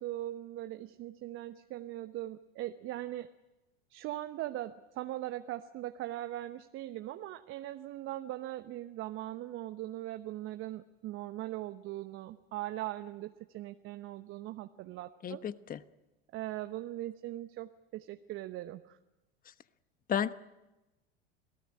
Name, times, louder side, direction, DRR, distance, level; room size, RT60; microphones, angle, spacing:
voice 1, 0.0-3.3 3.9-15.4 16.3-19.0, right 14 dB, 45° right, 1.0 m, -40 dB
voice 2, 15.2-15.8 20.1-20.3, left 9 dB, 30° left, 1.1 m, -32 dB
28.5 x 17.5 x 9.8 m
hypercardioid pair, 80°, 30 cm